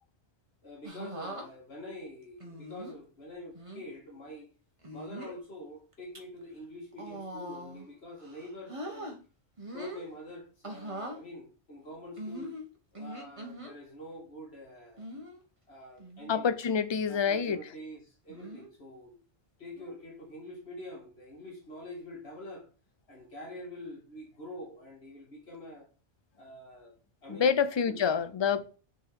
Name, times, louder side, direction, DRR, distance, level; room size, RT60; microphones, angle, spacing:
voice 1, 0.6-4.5 4.9-9.1 9.7-12.6 12.9-15.1 15.7-16.5 17.1-19.2 19.6-22.7 23.1-25.9 26.4-26.9 27.2-27.5 27.9-28.3, left 1 dB, 65° left, 2.0 m, -45 dB
sound 1, 0.8-1.5 2.4-3.0 3.5-3.8 4.8-5.4 5.9-6.2 6.9-7.9 8.2-9.2 9.6-10.1 10.6-11.2 12.2-13.7 15.0-15.4 16.0-16.3 16.6-16.7 18.3-18.7 19.8-20.0, right 1 dB, 30° right, 1.3 m, -42 dB
voice 2, 16.3-17.6 27.3-28.6, left 6 dB, 40° left, 0.4 m, -27 dB
6.4 x 4.4 x 4.7 m
omnidirectional pair, 1.2 m